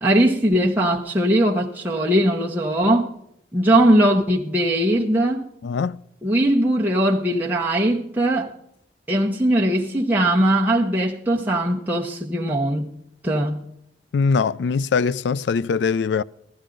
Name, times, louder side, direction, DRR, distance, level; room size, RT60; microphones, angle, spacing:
voice 1, 0.0-3.1 3.5-5.5 6.2-8.5 9.1-12.9 13.2-13.7, right 1 dB, 10° right, 0.9 m, -20 dB
voice 2, 5.6-6.0 14.1-16.2, left 5 dB, 80° left, 0.3 m, -21 dB
15.0 x 12.0 x 3.8 m
head